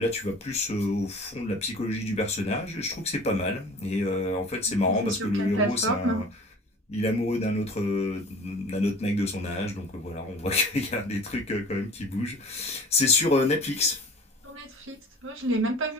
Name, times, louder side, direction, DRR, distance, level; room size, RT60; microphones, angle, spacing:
voice 1, 0.0-6.2 6.9-14.1, left 2 dB, 30° left, 1.1 m, -27 dB
voice 2, 4.9-6.2 14.4-15.9, right 2 dB, 65° right, 1.4 m, -29 dB
3.5 x 3.1 x 2.8 m
head